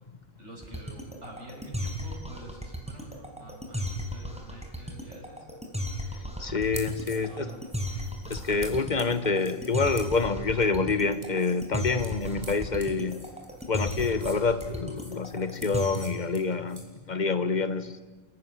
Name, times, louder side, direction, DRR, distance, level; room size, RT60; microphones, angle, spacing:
voice 1, 0.4-5.5 7.0-7.7, right 1 dB, 70° right, 0 dB, 6.6 m, -47 dB
sound 1, 0.6-16.3, equal, 5° right, 4.5 m, -35 dB
voice 2, 6.4-7.5 8.3-13.2 13.7-17.9, left 4 dB, 40° left, 12 dB, 1.5 m, -27 dB
sound 2, 6.6-16.9, right 1 dB, 25° right, 4.3 m, -49 dB
29.5 x 18.0 x 9.9 m, 1.2 s
omnidirectional pair, 1.2 m